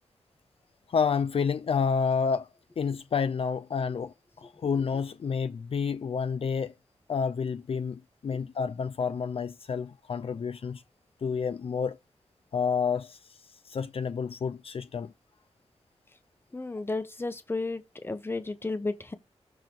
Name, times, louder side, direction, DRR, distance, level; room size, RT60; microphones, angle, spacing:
voice 1, 0.9-2.5 2.8-6.7 7.1-10.8 11.2-12.0 12.5-13.2 13.7-15.1, left 6 dB, 60° left, 0.5 m, -29 dB
voice 2, 16.5-19.1, left 3 dB, 20° left, 0.9 m, -33 dB
7.0 x 3.8 x 6.0 m
wide cardioid pair, 125°, 11 cm